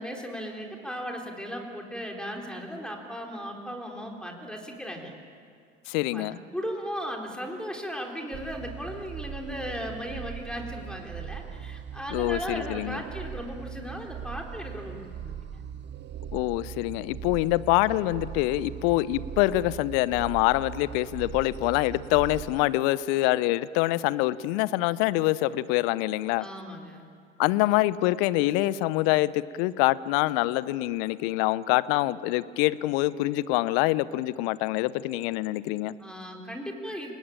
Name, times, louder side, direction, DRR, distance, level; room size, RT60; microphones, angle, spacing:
voice 1, 0.0-5.1 6.1-15.6 26.4-27.0 36.0-37.1, equal, ahead, 1 dB, 4.0 m, -37 dB
voice 2, 5.9-6.4 12.1-13.0 16.3-26.5 27.4-35.9, left 17 dB, 50° left, 18 dB, 0.9 m, -25 dB
sound 1, 8.3-22.5, right 8 dB, 30° right, 1.3 m, -40 dB
29.0 x 18.5 x 8.9 m, 2.3 s
figure-of-eight pair, 75°, 37 cm